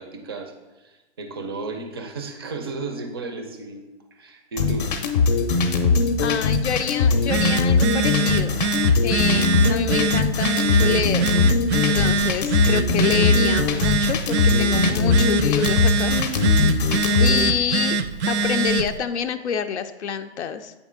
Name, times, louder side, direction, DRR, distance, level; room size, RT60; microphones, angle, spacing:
voice 1, 0.0-3.9 4.1-5.0, right 3 dB, 25° right, 5 dB, 0.4 m, -34 dB
sound 1, 4.6-17.5, left 4 dB, 40° left, 0.6 m, -20 dB
voice 2, 6.2-8.7 9.0-11.3 11.7-16.1 17.2-18.0 18.3-20.8, left 7 dB, 90° left, 8 dB, 0.5 m, -27 dB
Telephone, 7.0-19.0, right 3 dB, 80° right, 0.5 m, -24 dB
8.1 x 3.6 x 3.7 m, 1.1 s
hypercardioid pair, 150°, 33 cm